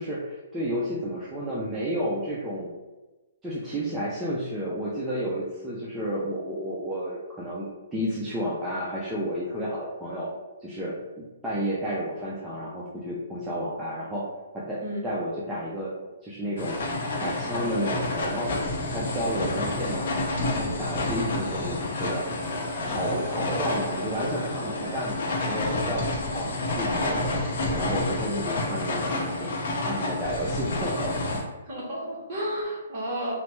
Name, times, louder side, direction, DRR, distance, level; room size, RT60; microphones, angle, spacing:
voice 1, 0.0-2.7 3.4-10.3 10.6-14.2 14.5-16.0 16.2-16.8 17.2-18.5 18.9-22.2 22.8-26.1 26.3-27.4 27.7-31.4, equal, 5° right, -8 dB, 0.3 m, -31 dB
sound 1, 16.6-31.4, left 2 dB, 50° left, 0.6 m, -29 dB
voice 2, 31.7-33.3, equal, 35° right, -5 dB, 0.9 m, -32 dB
3.0 x 2.1 x 3.0 m, 1.1 s
hypercardioid pair, 165°, 0 cm